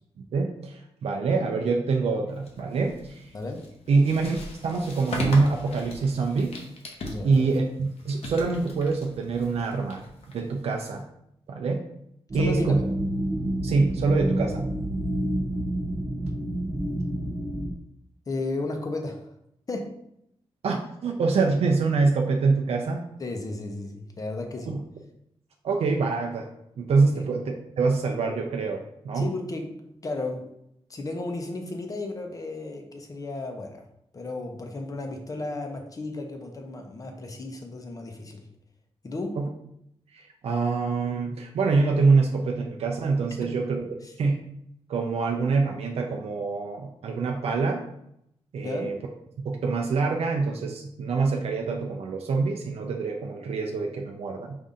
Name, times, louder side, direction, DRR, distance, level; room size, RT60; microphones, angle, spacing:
voice 1, 0.3-3.2 3.9-4.4 4.6-6.5 7.2-10.0 10.3-11.0 11.5-11.8 12.3-12.8 13.6-14.7 20.6-23.0 24.7-24.8 25.6-26.5 26.8-29.3 39.4-39.5 40.1-44.4 44.9-47.8 48.5-49.0 49.4-54.6, right 4 dB, 80° right, 1 dB, 0.5 m, -25 dB
sound 1, 2.4-11.0, left 1 dB, 80° left, 0.9 m, -39 dB
voice 2, 7.1-7.5 12.3-12.9 18.3-19.3 19.7-19.9 23.2-24.7 27.1-27.2 29.1-30.4 30.9-33.9 34.1-38.5 39.0-39.4 44.0-44.1 48.6-48.9, left 2 dB, 35° left, 3 dB, 0.7 m, -34 dB
sound 2, 12.3-17.7, right 1 dB, 30° right, 0.6 m, -29 dB
5.2 x 2.7 x 3.6 m, 0.76 s
wide cardioid pair, 150°, 10 cm